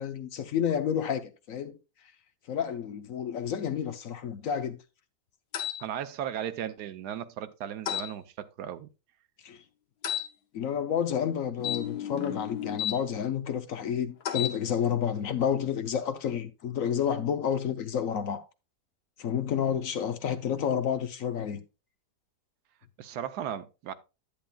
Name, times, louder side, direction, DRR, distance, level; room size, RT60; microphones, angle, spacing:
voice 1, 0.0-1.8 2.5-4.8 9.4-9.6 10.5-18.4 19.2-21.6, left 8 dB, 65° left, 1.1 m, -30 dB
sound 1, 5.5-5.8 7.9-8.1 10.0-10.3 11.6-13.0 14.2-14.6, left 11 dB, 80° left, 1.5 m, -32 dB
voice 2, 5.8-8.9 23.0-23.9, right 9 dB, 90° right, 1.3 m, -36 dB
10.5 x 8.7 x 2.3 m
omnidirectional pair, 1.7 m